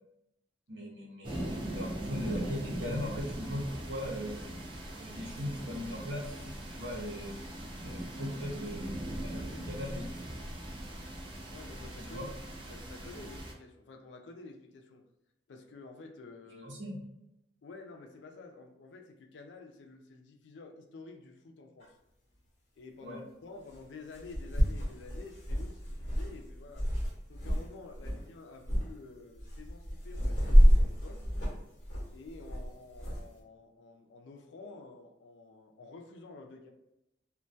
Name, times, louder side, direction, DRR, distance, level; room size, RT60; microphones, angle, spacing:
voice 1, 0.7-4.4 5.0-7.4 7.8-8.9 9.2-10.1 12.0-12.3 16.6-17.0 23.0-23.2, left 1 dB, 90° right, -3 dB, 0.7 m, -39 dB
sound 1, 1.2-13.5, right 1 dB, 30° right, 0.4 m, -40 dB
voice 2, 4.0-4.3 8.2-8.8 9.3-9.7 11.5-12.3 12.6-15.0 15.5-16.7 17.6-22.0 22.8-26.9 27.3-31.3 32.1-36.7, left 3 dB, 75° left, 3 dB, 0.4 m, -50 dB
sound 2, 21.8-21.9 23.7-23.8 24.1-27.7 27.9-28.2 28.6-28.9 29.4-33.2, equal, 45° left, 0.9 m, -27 dB
2.2 x 2.1 x 2.6 m, 0.85 s
head